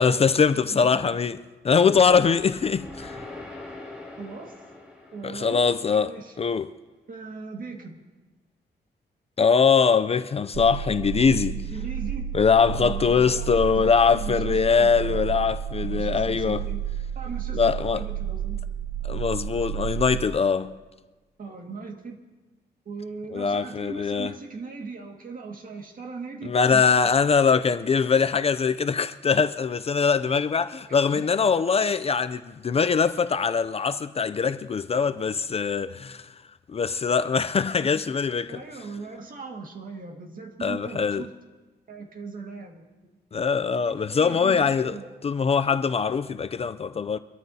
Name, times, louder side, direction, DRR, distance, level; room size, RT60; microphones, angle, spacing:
voice 1, 0.0-1.4 1.6-3.2 5.2-6.7 9.4-11.6 12.3-16.6 17.5-18.0 19.0-20.8 23.3-24.3 26.4-36.3 36.7-38.6 40.6-41.2 43.3-45.0 45.2-47.2, left 5 dB, 35° left, 0.4 m, -22 dB
voice 2, 0.6-1.0 4.2-4.6 5.1-5.7 6.0-6.4 7.1-8.0 11.5-12.3 12.8-15.3 15.8-16.9 17.2-17.6 17.9-18.6 21.4-22.2 22.9-26.9 30.9-31.2 37.8-38.0 38.5-41.3 41.9-43.1 43.8-45.2, right 4 dB, 50° right, 1.9 m, -39 dB
sound 1, 1.8-6.1, left 2 dB, 5° right, 2.6 m, -43 dB
sound 2, 10.5-20.3, right 9 dB, 80° right, 0.8 m, -31 dB
24.5 x 13.0 x 2.8 m
wide cardioid pair, 120°, 18 cm